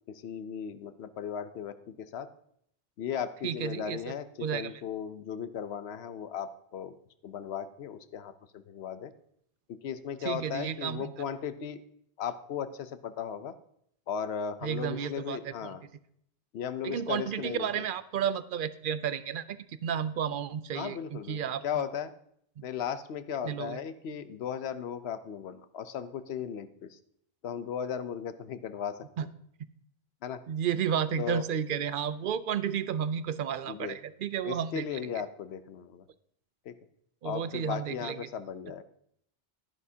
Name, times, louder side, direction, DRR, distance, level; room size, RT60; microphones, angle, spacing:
voice 1, 0.1-2.3 3.0-7.0 7.2-9.1 9.8-11.8 12.2-13.5 14.1-15.8 16.5-17.8 20.7-22.1 22.6-27.0 27.4-29.0 30.2-30.4 31.2-31.4 33.7-34.0 34.4-36.0 36.6-36.7 37.2-38.8, left 8 dB, 80° left, 12 dB, 1.0 m, -36 dB
voice 2, 3.4-4.0 4.4-4.7 10.2-11.1 14.6-15.7 16.8-21.6 22.6-22.7 23.4-23.8 29.2-29.3 30.5-34.8 37.2-38.3, right 8 dB, 60° right, 14 dB, 0.7 m, -32 dB
12.0 x 10.5 x 2.8 m, 0.70 s
omnidirectional pair, 1.1 m